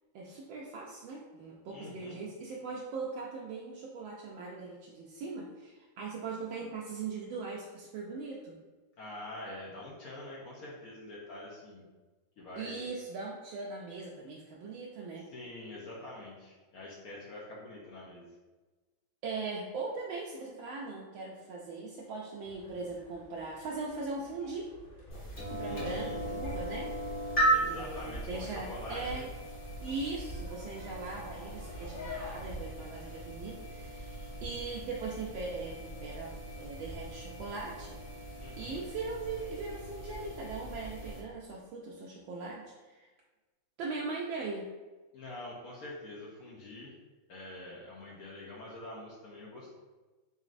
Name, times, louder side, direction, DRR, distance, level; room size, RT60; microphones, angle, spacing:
voice 1, 0.1-8.6 12.6-15.3 19.2-24.7 25.5-27.0 27.7-29.3 29.8-38.0 38.6-43.1 43.8-44.7, right 3 dB, 80° right, -3 dB, 1.3 m, -40 dB
voice 2, 1.7-2.2 9.0-11.9 12.4-12.9 15.3-18.3 25.6-26.2 27.5-29.3 38.4-38.9 45.1-46.9 47.3-49.7, left 1 dB, 65° left, -4 dB, 0.9 m, -45 dB
sound 1, 22.4-32.4, left 2 dB, 45° left, 1.8 m, -50 dB
sound 2, 25.1-41.2, right 1 dB, 30° left, 1.1 m, -37 dB
4.0 x 3.7 x 2.5 m, 1.2 s
omnidirectional pair, 2.2 m